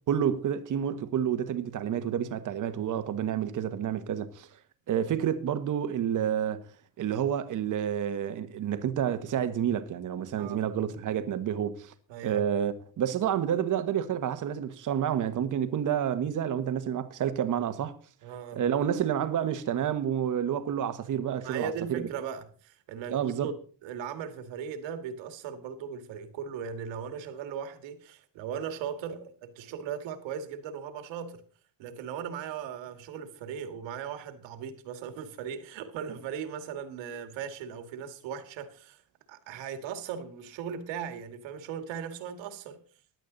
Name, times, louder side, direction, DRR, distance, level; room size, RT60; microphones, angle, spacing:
voice 1, 0.1-4.5 4.9-6.6 7.0-11.9 12.2-17.9 18.5-22.1 23.1-23.5, right 9 dB, 45° right, 1.3 m, -29 dB
voice 2, 12.1-12.4 18.2-18.6 21.4-23.5 23.8-31.4 31.8-39.0 39.3-42.8, right 7 dB, 80° right, 2.2 m, -38 dB
16.0 x 11.0 x 3.9 m
cardioid pair, 145°, 44 cm